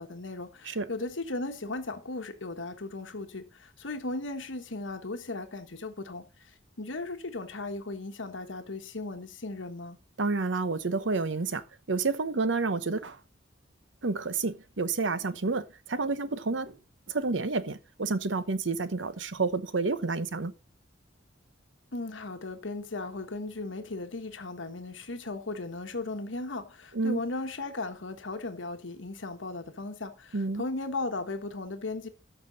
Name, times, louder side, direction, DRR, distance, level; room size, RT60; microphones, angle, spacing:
voice 1, 0.0-10.0 21.9-32.1, left 2 dB, 85° left, 1.4 m, -37 dB
voice 2, 10.2-13.2 14.0-16.8 17.1-20.5 26.9-27.2 30.3-30.6, right 3 dB, 75° right, 0.9 m, -29 dB
13.0 x 6.0 x 4.0 m
head